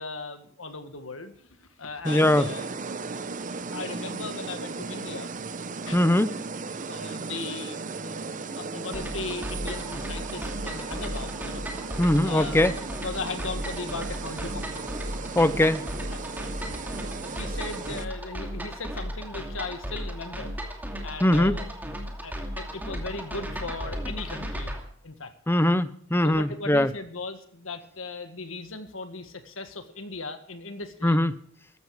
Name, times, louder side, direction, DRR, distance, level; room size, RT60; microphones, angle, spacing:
voice 1, 0.0-2.7 3.1-3.2 3.7-5.3 5.8-6.0 6.7-11.6 12.2-14.9 16.1-16.4 16.7-16.9 17.2-20.5 21.0-21.7 22.2-24.7 25.0-25.3 26.2-31.2, left 3 dB, 70° left, 8 dB, 1.8 m, -38 dB
voice 2, 2.0-2.5 5.9-6.3 12.0-12.7 15.3-15.8 21.2-21.6 25.5-26.9 31.0-31.3, left 1 dB, 10° left, 14 dB, 0.7 m, -21 dB
sound 1, 2.0-18.1, right 4 dB, 40° right, 0.8 m, -36 dB
sound 2, 8.9-24.8, equal, 10° right, 2.5 m, -35 dB
15.0 x 13.0 x 4.9 m, 0.63 s
head